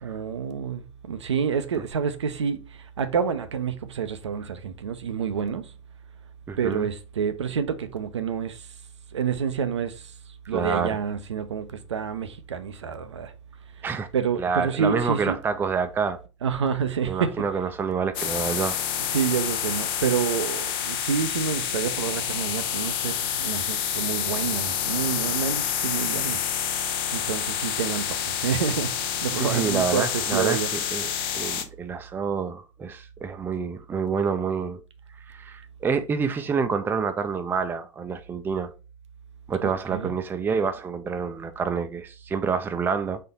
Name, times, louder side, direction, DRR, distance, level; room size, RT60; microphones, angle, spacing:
voice 1, 0.0-5.7 6.6-8.7 9.1-10.1 10.5-13.3 14.1-15.4 16.4-17.4 19.1-26.4 27.1-30.7 39.6-40.1, right 7 dB, 70° right, 0.6 m, -28 dB
voice 2, 6.5-6.9 10.5-11.0 13.8-14.1 14.4-16.2 17.1-18.8 29.4-31.1 31.3-34.8 35.3-38.7 39.5-43.2, right 5 dB, 15° right, 0.4 m, -27 dB
sound 1, 18.1-31.6, left 9 dB, 50° left, 0.7 m, -28 dB
4.3 x 2.7 x 4.1 m
figure-of-eight pair, 85°, 15 cm